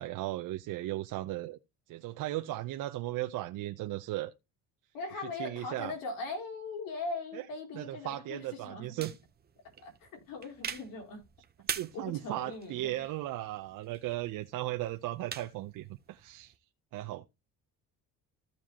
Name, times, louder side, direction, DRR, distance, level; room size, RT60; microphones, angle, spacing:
voice 1, 0.0-1.6 1.9-4.3 5.4-5.9 7.3-7.4 7.7-9.1 11.6-16.5 16.9-17.3, right 16 dB, 65° right, 0.7 m, -36 dB
voice 2, 4.9-9.1 9.8-11.2 11.9-13.0, left 3 dB, 75° left, 4.4 m, -40 dB
sound 1, 9.0-16.6, right 7 dB, 30° right, 0.8 m, -44 dB
15.0 x 5.0 x 2.9 m
cardioid pair, 130°, 34 cm